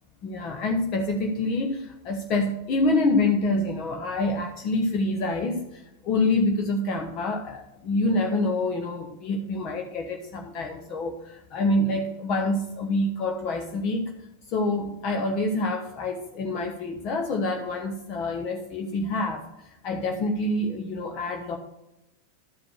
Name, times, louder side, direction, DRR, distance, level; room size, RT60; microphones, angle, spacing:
voice 1, 0.2-14.1 14.5-21.6, left 2 dB, 40° left, 3 dB, 1.0 m, -27 dB
12.0 x 4.9 x 6.4 m, 0.91 s
figure-of-eight pair, 90°, 0 cm